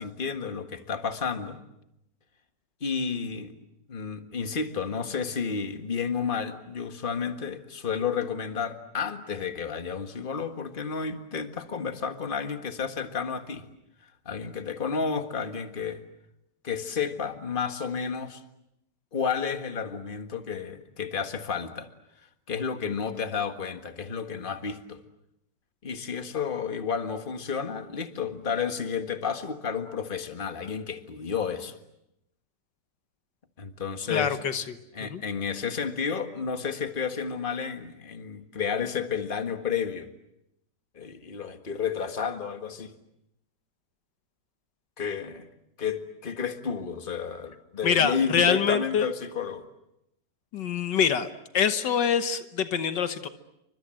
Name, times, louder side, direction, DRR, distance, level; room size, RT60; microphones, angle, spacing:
voice 1, 0.0-1.6 2.8-3.5 3.9-13.6 14.3-16.0 16.6-18.4 19.1-21.9 22.5-25.0 25.8-31.8 33.6-34.4 34.9-40.1 41.0-42.9 45.0-45.5 45.8-49.6, left 6 dB, 30° left, 7 dB, 1.7 m, -31 dB
voice 2, 34.1-35.2 47.8-49.1 50.5-51.3 51.5-53.3, left 7 dB, 85° left, 10 dB, 1.9 m, -25 dB
29.5 x 25.0 x 7.7 m, 0.82 s
omnidirectional pair, 1.9 m